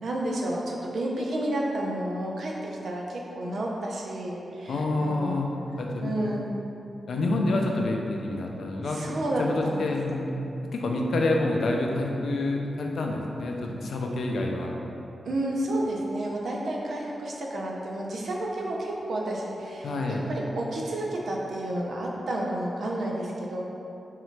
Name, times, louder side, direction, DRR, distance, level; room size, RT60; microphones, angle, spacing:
voice 1, 0.0-5.4 6.0-6.5 8.9-9.9 15.2-23.6, right 1 dB, 65° right, -2 dB, 0.5 m, -31 dB
voice 2, 4.7-5.5 5.8-6.1 7.1-10.3 10.7-14.8 19.8-20.2, left 2 dB, 65° left, 1 dB, 0.4 m, -28 dB
3.7 x 3.1 x 3.2 m, 2.9 s
wide cardioid pair, 180°, 0 cm